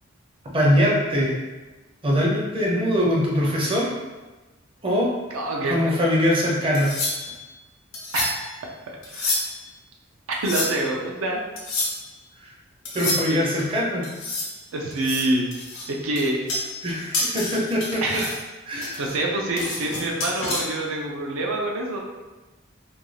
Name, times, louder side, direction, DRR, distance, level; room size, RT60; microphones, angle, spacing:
voice 1, 0.5-1.3 2.0-3.9 4.8-5.1 5.7-6.9 12.9-14.1 16.8-18.2 18.7-19.0, equal, 25° right, -3 dB, 0.5 m, -22 dB
voice 2, 5.3-5.9 8.1-8.3 9.1-9.4 10.3-11.4 13.3-13.5 14.7-15.5 15.9-16.4 18.0-18.4 18.7-22.0, right 2 dB, 80° right, -1 dB, 0.5 m, -26 dB
sound 1, 6.7-7.4 7.9-8.5 9.0-9.7 10.3-10.9 11.6-12.0 12.8-13.6 14.0-14.6 14.9-16.9 17.1-18.4 18.8-20.6, left 2 dB, 70° left, 0.6 m, -29 dB
2.5 x 2.2 x 3.1 m, 1.2 s
head